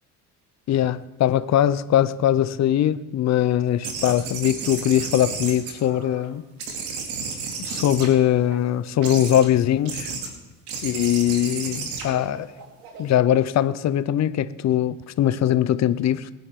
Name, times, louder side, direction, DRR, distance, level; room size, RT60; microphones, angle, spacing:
voice 1, 0.7-6.4 7.6-10.1 10.8-12.5 13.0-16.3, left 11 dB, 50° left, 0.7 m, -21 dB
sound 1, 3.8-6.3 6.6-8.5 9.0-9.5 9.9-10.3 10.7-13.2, right 5 dB, 90° right, 2.6 m, -33 dB
21.5 x 10.0 x 3.7 m
cardioid pair, 105°, 35 cm